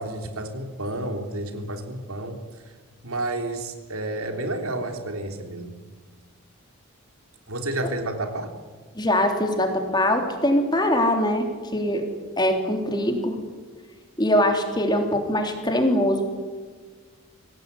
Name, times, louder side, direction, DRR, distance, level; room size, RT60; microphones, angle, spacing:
voice 1, 0.0-2.4 3.0-5.8 7.5-8.5, right 2 dB, 85° right, 5 dB, 3.4 m, -30 dB
voice 2, 8.9-12.1 12.4-13.4 14.2-16.3, left 1 dB, 20° left, 4 dB, 3.3 m, -22 dB
25.0 x 17.5 x 9.8 m, 1.4 s
head